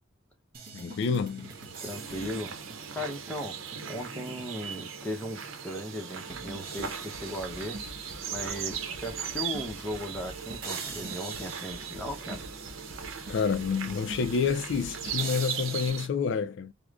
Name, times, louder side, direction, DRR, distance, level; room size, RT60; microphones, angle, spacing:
sound 1, 0.5-5.0 5.4-5.5 6.3-15.9, right 3 dB, 50° right, 1.2 m, -44 dB
voice 1, 0.7-1.5 13.3-16.7, left 5 dB, 65° left, 0.3 m, -28 dB
sound 2, 1.4-16.1, right 7 dB, 90° right, 0.7 m, -39 dB
voice 2, 1.8-2.5 2.9-3.6 3.9-12.4, left 1 dB, 5° left, 0.7 m, -37 dB
4.8 x 2.0 x 2.4 m
head